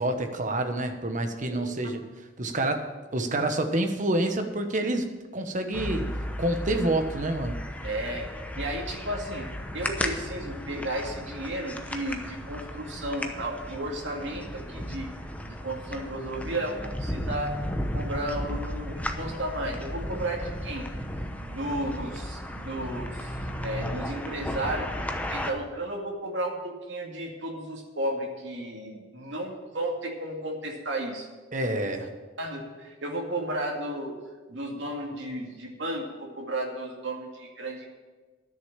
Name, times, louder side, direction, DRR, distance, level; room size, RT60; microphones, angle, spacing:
voice 1, 0.0-2.1 2.4-6.1 6.4-7.6 31.5-32.1, right 1 dB, 45° right, 7 dB, 1.1 m, -28 dB
sound 1, 5.7-25.5, equal, 10° left, 0.8 m, -35 dB
voice 2, 7.8-8.3 8.6-9.5 9.7-15.1 15.5-17.6 17.9-20.9 21.4-23.4 23.6-25.0 25.3-31.3 32.0-32.1 32.4-34.1 34.5-37.9, right 1 dB, 75° right, 0 dB, 2.3 m, -33 dB
11.0 x 6.6 x 8.8 m, 1.3 s
head